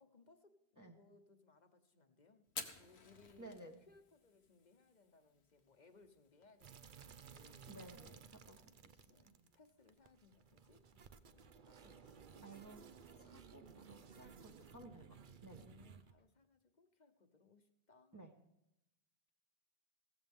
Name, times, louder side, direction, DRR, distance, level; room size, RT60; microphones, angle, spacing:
voice 1, 0.0-7.7 8.5-12.6 13.1-13.4 15.6-18.3, left 4 dB, 45° left, 8 dB, 1.2 m, -68 dB
Fire, 2.4-11.6, left 5 dB, 85° left, 1.4 m, -57 dB
voice 2, 3.4-3.8 7.7-8.6 8.8-8.9 12.4-12.8 13.2-15.7 18.1-18.3, right 2 dB, 20° right, 1 dB, 1.2 m, -56 dB
sound 1, 6.6-16.1, right 6 dB, 55° right, 0.9 m, -58 dB
15.5 x 14.5 x 3.6 m, 0.85 s
omnidirectional pair, 1.1 m